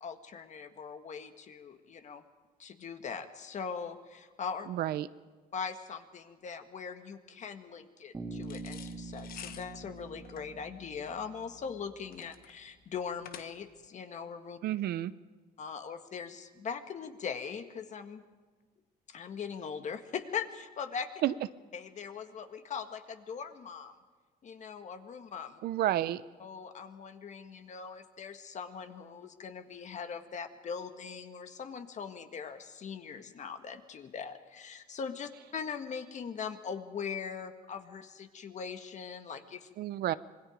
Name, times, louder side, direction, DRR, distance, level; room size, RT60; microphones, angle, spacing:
voice 1, 0.0-2.2 2.6-4.7 5.5-14.6 15.6-18.2 19.1-21.1 21.7-23.9 24.4-25.6 26.4-39.7, left 6 dB, 45° left, 7 dB, 1.7 m, -41 dB
voice 2, 4.7-5.1 14.6-15.1 21.2-21.3 25.6-26.2 39.8-40.1, right 13 dB, 70° right, 15 dB, 0.7 m, -30 dB
Bass guitar, 8.1-12.0, right 3 dB, 20° right, 2.5 m, -45 dB
sound 1, 8.4-13.9, left 9 dB, 60° left, 1.3 m, -50 dB
26.5 x 21.0 x 5.1 m, 1.4 s
cardioid pair, 110°, 17 cm